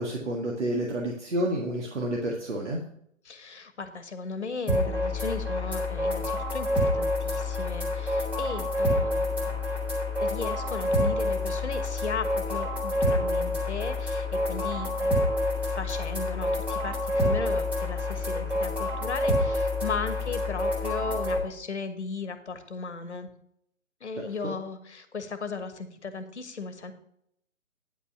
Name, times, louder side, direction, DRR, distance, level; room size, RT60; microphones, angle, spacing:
voice 1, 0.0-2.8 24.4-24.5, right 1 dB, 60° right, -1 dB, 1.9 m, -29 dB
voice 2, 3.2-9.6 10.2-23.3 24.0-26.9, left 4 dB, 55° left, 11 dB, 1.4 m, -36 dB
sound 1, 4.7-21.4, left 1 dB, 5° right, 1.4 m, -28 dB
9.8 x 5.6 x 5.6 m, 0.71 s
figure-of-eight pair, 140°, 40 cm